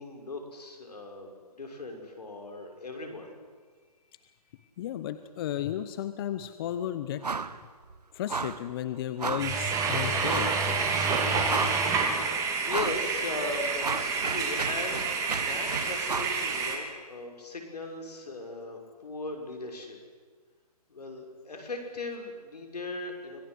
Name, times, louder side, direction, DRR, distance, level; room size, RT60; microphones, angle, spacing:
voice 1, 0.0-3.3 4.6-4.7 12.6-20.0 20.9-23.4, left 2 dB, 80° left, 3 dB, 6.3 m, -38 dB
voice 2, 4.8-7.2 8.1-10.5, left 11 dB, 35° left, 11 dB, 1.0 m, -33 dB
sound 1, 7.2-7.6 7.8-8.0 8.3-8.6 9.2-9.6 10.2-10.6 11.1-11.2 11.4-12.0 12.7-13.0 13.4-16.4, right 4 dB, 90° right, 1.4 m, -33 dB
sound 2, 9.4-16.8, right 4 dB, 15° right, 3.1 m, -28 dB
25.5 x 19.5 x 8.1 m, 1.5 s
hypercardioid pair, 145°, 20 cm